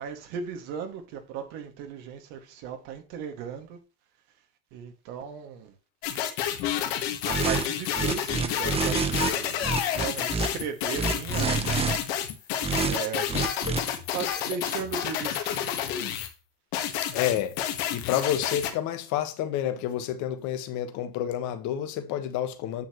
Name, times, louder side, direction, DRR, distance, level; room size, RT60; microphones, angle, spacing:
voice 1, 0.0-3.8 4.7-5.8 7.2-9.6 10.0-12.0 12.8-13.3 14.1-15.6, right 7 dB, 80° right, 2.2 m, -36 dB
sound 1, 6.0-16.3 16.7-18.7, left 10 dB, 90° left, 1.6 m, -30 dB
sound 2, 7.3-7.6 7.9-9.3 9.6-10.5 10.9-12.0 12.6-13.0 13.3-13.8, right 5 dB, 20° right, 0.9 m, -27 dB
voice 2, 17.1-17.6 17.9-22.9, left 11 dB, 70° left, 1.6 m, -29 dB
9.0 x 6.8 x 3.1 m
cardioid pair, 120°, 30 cm